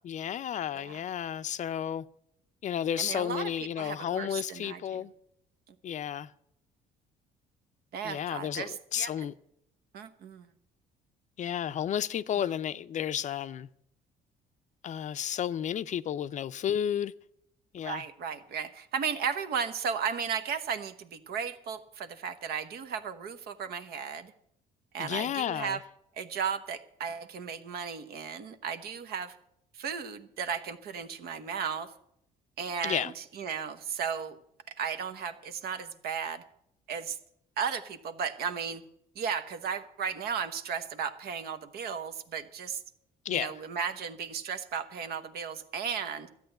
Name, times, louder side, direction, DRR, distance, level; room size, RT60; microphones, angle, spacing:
voice 1, 0.0-2.1 2.6-5.1 5.8-6.3 8.0-9.3 11.4-13.7 14.8-17.1 17.7-18.0 25.0-25.8 32.8-33.1 43.2-43.5, left 9 dB, 45° left, 0.5 m, -32 dB
voice 2, 3.0-3.5 3.8-5.1 7.9-9.3 9.9-10.5 17.8-24.3 24.9-25.8 26.2-29.4 29.7-31.9 32.6-34.4 34.7-36.4 36.9-37.2 37.6-38.8 39.1-42.8 43.3-46.3, right 6 dB, 65° right, 1.1 m, -35 dB
13.0 x 8.5 x 7.8 m
cardioid pair, 110°, 17 cm